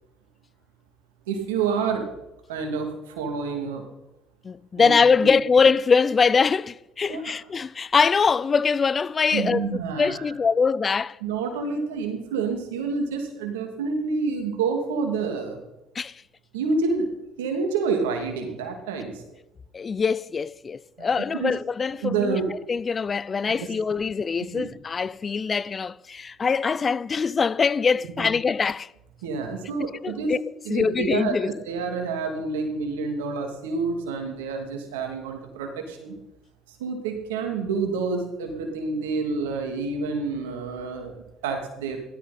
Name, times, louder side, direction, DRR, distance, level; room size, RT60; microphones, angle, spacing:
voice 1, 1.3-2.0 2.5-3.8 4.8-4.9 7.1-7.3 9.3-10.2 11.2-15.6 16.5-17.1 17.4-19.2 21.0-21.1 21.3-21.5 22.0-22.4 24.5-24.7 28.0-28.3 29.2-30.3 30.6-36.1 36.7-42.0, right 4 dB, 90° right, 2.7 m, -28 dB
voice 2, 4.4-11.2 15.9-16.2 19.7-22.4 22.7-28.9 30.0-30.4 30.7-31.5, left 5 dB, 35° left, 0.6 m, -23 dB
17.0 x 13.0 x 4.3 m
hypercardioid pair, 60°, 0 cm